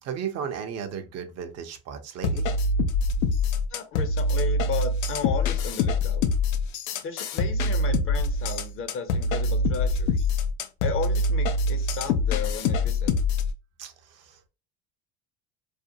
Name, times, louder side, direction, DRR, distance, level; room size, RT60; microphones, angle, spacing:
voice 1, 0.0-2.5 13.8-14.5, right 7 dB, 50° right, 0.6 m, -35 dB
sound 1, 2.2-13.5, left 2 dB, 85° left, 0.5 m, -25 dB
voice 2, 3.7-6.2 7.0-10.2 10.8-13.1, left 7 dB, 40° left, 0.6 m, -34 dB
2.5 x 2.1 x 2.7 m
supercardioid pair, 95°, 32 cm